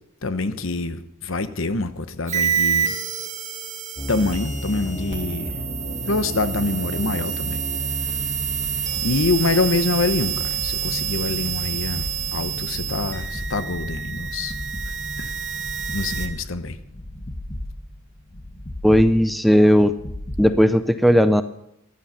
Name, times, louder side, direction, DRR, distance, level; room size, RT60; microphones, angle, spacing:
voice 1, 0.2-3.0 4.1-5.7 6.1-7.6 9.0-14.5 14.9-15.3 15.9-16.8, left 3 dB, 70° left, 11 dB, 0.9 m, -25 dB
sound 1, 2.3-16.3, right 8 dB, 35° right, 1.5 m, -28 dB
sound 2, 4.0-20.6, left 1 dB, 30° left, 1.1 m, -33 dB
voice 2, 18.8-19.9 20.4-21.4, equal, ahead, 11 dB, 0.4 m, -16 dB
15.0 x 11.5 x 5.7 m, 0.79 s
head